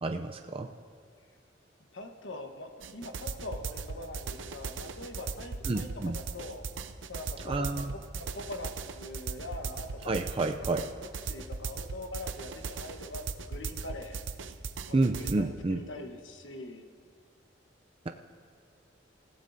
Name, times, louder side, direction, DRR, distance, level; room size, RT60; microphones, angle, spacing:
voice 1, 0.0-0.7 5.7-6.2 7.4-7.9 10.1-10.9 14.9-15.9, right 2 dB, 30° right, 5 dB, 0.5 m, -29 dB
voice 2, 1.9-6.6 7.1-7.8 8.1-10.1 11.3-14.2 14.9-16.9, left 2 dB, 75° left, 4 dB, 1.2 m, -43 dB
sound 1, 2.8-15.3, right 5 dB, 80° right, 0.7 m, -38 dB
27.5 x 15.5 x 2.7 m, 2.2 s
head